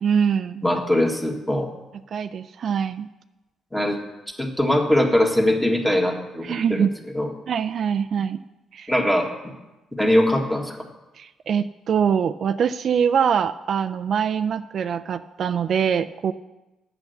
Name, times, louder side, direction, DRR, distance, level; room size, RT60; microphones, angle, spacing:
voice 1, 0.0-0.6 2.1-3.1 6.4-6.9 7.5-8.4 8.7-8.9 11.2-16.3, right 7 dB, 60° right, 10 dB, 0.3 m, -23 dB
voice 2, 0.6-1.7 3.7-4.0 4.4-6.9 7.1-7.3 8.9-9.3 10.0-10.8, left 1 dB, 5° left, 2 dB, 1.7 m, -21 dB
8.4 x 6.8 x 7.9 m, 1.0 s
cardioid pair, 90°, 0 cm